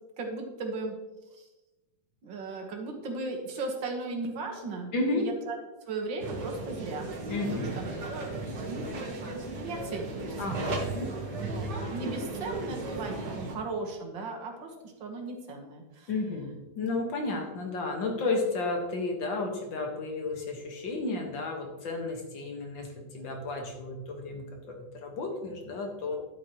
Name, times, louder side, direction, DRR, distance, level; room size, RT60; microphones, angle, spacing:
voice 1, 0.2-1.0 1.4-1.5 2.2-5.6 5.9-7.1 7.5-7.7 8.1-10.7 11.0-16.1, right 3 dB, 90° right, 2 dB, 2.1 m, -37 dB
voice 2, 4.9-5.3 7.3-7.7 10.4-11.2 16.1-26.2, left 3 dB, 90° left, 2 dB, 2.3 m, -32 dB
sound 1, 6.2-13.6, right 2 dB, 65° right, 2.0 m, -35 dB
11.5 x 8.5 x 3.0 m, 1.0 s
omnidirectional pair, 2.0 m